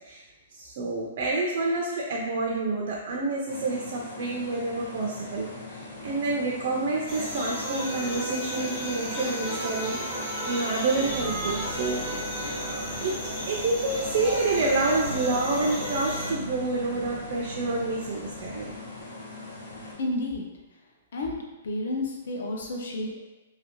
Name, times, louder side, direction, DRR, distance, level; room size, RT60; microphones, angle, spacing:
voice 1, 0.6-12.0 12.5-13.1 13.5-18.7, right 3 dB, 40° right, -2 dB, 0.3 m, -28 dB
sound 1, 3.5-19.9, left 2 dB, 85° left, 1.0 m, -41 dB
sound 2, 7.1-16.3, equal, 35° left, 1.0 m, -33 dB
sound 3, 11.0-19.0, right 1 dB, 15° left, 0.8 m, -42 dB
voice 2, 20.0-20.5 21.1-21.4 21.6-23.2, left 2 dB, 60° left, 0 dB, 0.6 m, -30 dB
2.8 x 2.5 x 2.8 m, 1.1 s
hypercardioid pair, 180°, 0 cm